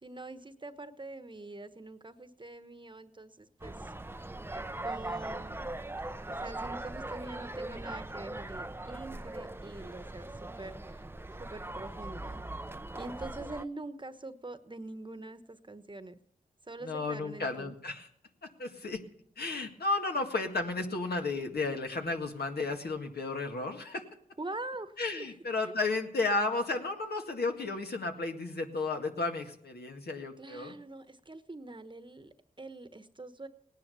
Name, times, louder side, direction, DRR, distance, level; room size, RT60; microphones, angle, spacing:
voice 1, 0.0-3.9 4.5-5.7 6.3-11.0 11.4-12.4 12.9-16.2 16.7-17.7 24.4-24.9 25.2-25.3 25.6-25.7 30.4-33.5, right 2 dB, 30° right, 11 dB, 1.2 m, -44 dB
sound 1, 3.6-13.6, right 2 dB, 15° right, 0.6 m, -40 dB
voice 2, 16.8-18.1 18.6-19.0 19.4-24.0 25.0-30.8, left 3 dB, 70° left, 3 dB, 2.0 m, -33 dB
18.0 x 10.5 x 6.9 m, 0.70 s
cardioid pair, 45°, 17 cm